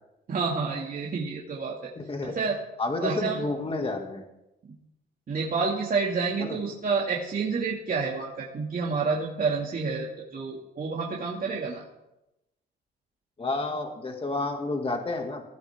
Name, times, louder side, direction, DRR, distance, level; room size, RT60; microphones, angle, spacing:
voice 1, 0.3-1.9 2.2-2.6 3.0-3.4 5.3-11.8, right 4 dB, 45° right, -3 dB, 2.4 m, -29 dB
voice 2, 2.0-2.3 2.8-4.2 6.4-6.6 13.4-15.4, left 2 dB, 30° left, 3 dB, 2.3 m, -30 dB
19.5 x 15.0 x 3.7 m, 0.93 s
cardioid pair, 90°, 20 cm